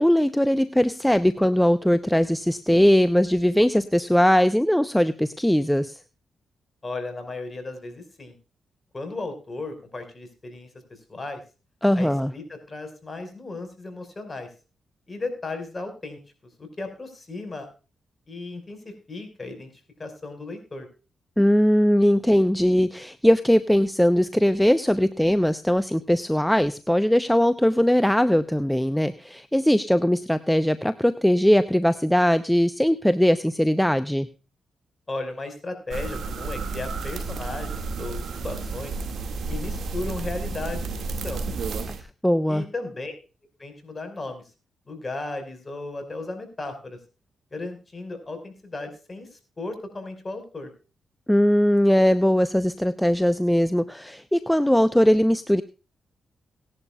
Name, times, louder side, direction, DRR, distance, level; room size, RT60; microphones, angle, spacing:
voice 1, 0.0-6.0 11.8-12.3 21.4-34.3 41.9-42.0 42.2-42.6 51.3-55.6, equal, 5° left, 13 dB, 0.7 m, -20 dB
voice 2, 6.8-8.3 8.9-11.4 12.0-14.5 15.1-16.2 16.6-17.7 18.3-19.7 20.0-20.9 35.1-38.9 39.5-40.9 41.2-41.4 42.5-43.1 43.6-44.4 44.9-47.0 47.5-50.7, left 2 dB, 35° left, 6 dB, 5.2 m, -35 dB
sound 1, 35.9-42.0, right 3 dB, 70° right, 2.1 m, -31 dB
18.5 x 11.0 x 2.4 m, 0.33 s
supercardioid pair, 55°, 0 cm